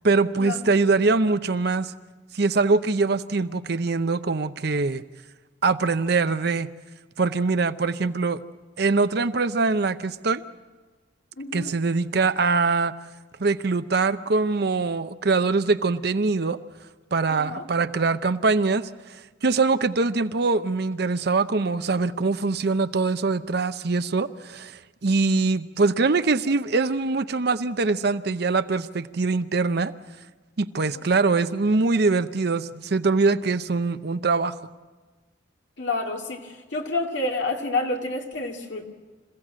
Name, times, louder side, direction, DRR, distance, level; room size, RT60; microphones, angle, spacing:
voice 1, 0.0-1.9 2.3-5.0 5.6-6.7 7.2-8.4 8.8-10.4 11.5-12.9 13.4-16.6 17.1-29.9 30.6-34.6, right 3 dB, 60° right, 12 dB, 0.7 m, -23 dB
voice 2, 11.4-11.7 17.3-17.6 35.8-38.9, left 2 dB, 70° left, 2 dB, 2.4 m, -29 dB
27.0 x 16.0 x 7.5 m, 1.3 s
head